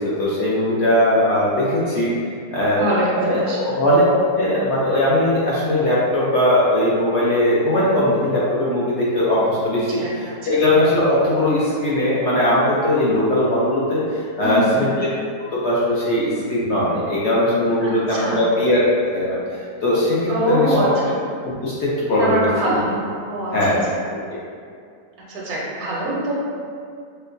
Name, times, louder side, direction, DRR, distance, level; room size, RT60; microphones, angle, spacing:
voice 1, 0.0-2.1 2.5-2.9 3.1-4.1 4.4-14.0 14.4-15.1 15.5-18.8 19.1-19.4 19.8-20.9 21.4-22.8 23.5-23.8 24.1-24.2, left 1 dB, 65° left, -7 dB, 0.7 m, -19 dB
voice 2, 2.8-3.7 10.0-10.6 14.4-14.9 17.8-18.5 20.3-21.1 22.2-23.7 25.3-26.3, right 1 dB, 85° right, -5 dB, 1.3 m, -24 dB
4.3 x 2.1 x 2.5 m, 2.3 s
omnidirectional pair, 1.6 m